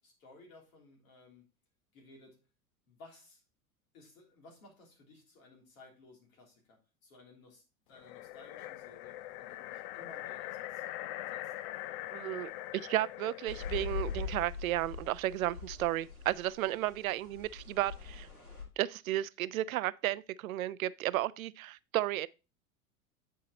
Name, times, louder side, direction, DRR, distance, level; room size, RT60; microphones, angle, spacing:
voice 1, 0.0-1.5 1.9-2.4 2.9-3.4 3.9-10.8 11.3-11.5, left 2 dB, 65° left, 3.4 m, -58 dB
sound 1, 7.9-14.4, left 15 dB, 40° left, 0.4 m, -43 dB
voice 2, 12.1-18.3 18.8-22.3, right 14 dB, 70° right, 0.5 m, -33 dB
sound 2, 13.5-18.6, left 6 dB, 85° left, 2.9 m, -42 dB
8.6 x 4.6 x 4.1 m
figure-of-eight pair, 85°, 44 cm